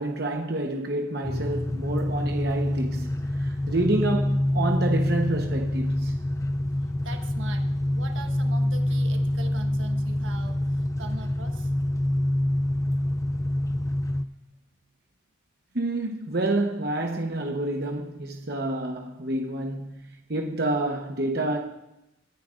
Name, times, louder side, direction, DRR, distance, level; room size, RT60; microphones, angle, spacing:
voice 1, 0.0-6.1 15.7-21.6, right 2 dB, 55° right, 1.1 m, -28 dB
sound 1, 1.2-14.2, left 1 dB, 15° left, 0.4 m, -26 dB
voice 2, 7.0-7.6 7.9-11.7, right 3 dB, 80° right, 1.4 m, -42 dB
23.0 x 10.0 x 2.5 m
head